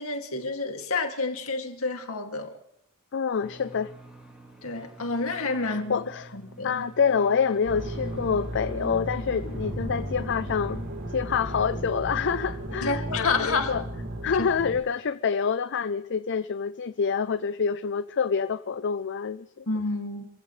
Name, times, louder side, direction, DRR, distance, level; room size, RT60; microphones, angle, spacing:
voice 1, 0.0-2.6 4.6-6.0 6.3-6.7 12.8-13.7 14.4-14.5 19.7-20.3, left 3 dB, 75° left, 2.5 m, -29 dB
voice 2, 3.1-3.9 5.6-6.3 6.6-10.8 11.1-13.8 14.2-19.7, left 6 dB, 55° left, 0.5 m, -27 dB
sound 1, 3.4-13.0, right 1 dB, 5° right, 3.0 m, -51 dB
sound 2, 7.6-14.8, right 1 dB, 55° right, 2.3 m, -34 dB
27.0 x 15.5 x 3.3 m
head